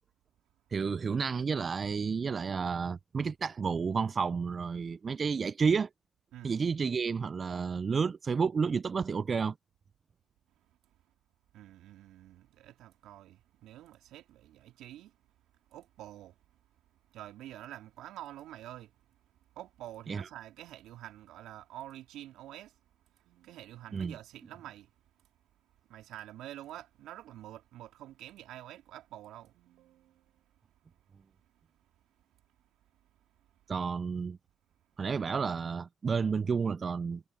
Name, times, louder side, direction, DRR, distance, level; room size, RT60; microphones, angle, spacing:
voice 1, 0.7-5.9 6.4-9.5 20.1-20.3 23.9-24.1 33.7-34.4 35.0-37.2, right 5 dB, 50° right, 0.6 m, -31 dB
voice 2, 11.5-15.2 15.7-16.4 17.1-18.9 19.5-22.8 23.1-24.9 25.9-30.4, right 13 dB, 75° right, 2.9 m, -48 dB
hypercardioid pair, 45°, 0 cm